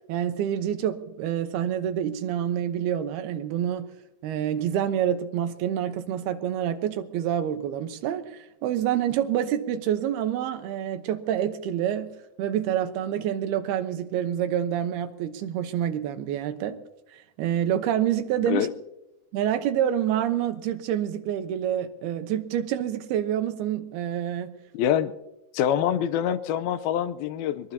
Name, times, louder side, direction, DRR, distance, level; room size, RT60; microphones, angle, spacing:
voice 1, 0.1-3.9 4.2-12.1 12.4-16.8 17.1-18.7 19.3-24.5, right 10 dB, 90° right, 3.0 m, -27 dB
voice 2, 24.7-25.1 25.5-27.7, left 10 dB, 80° left, 2.6 m, -25 dB
23.0 x 21.5 x 2.8 m
omnidirectional pair, 4.4 m